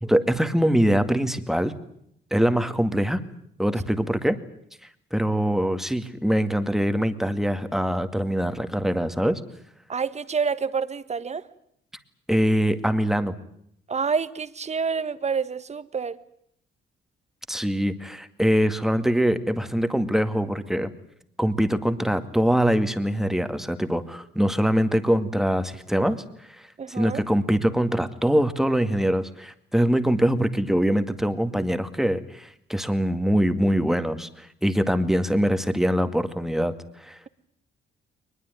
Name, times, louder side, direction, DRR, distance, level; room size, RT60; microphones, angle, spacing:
voice 1, 0.0-1.8 2.3-3.2 3.6-4.4 5.1-9.4 12.3-13.3 17.5-20.9 21.4-26.2 26.9-37.2, equal, ahead, 9 dB, 2.1 m, -23 dB
voice 2, 9.9-11.4 13.9-16.2 26.8-27.2, right 5 dB, 35° right, 13 dB, 1.5 m, -28 dB
22.5 x 21.0 x 9.4 m, 0.72 s
cardioid pair, 90°, 20 cm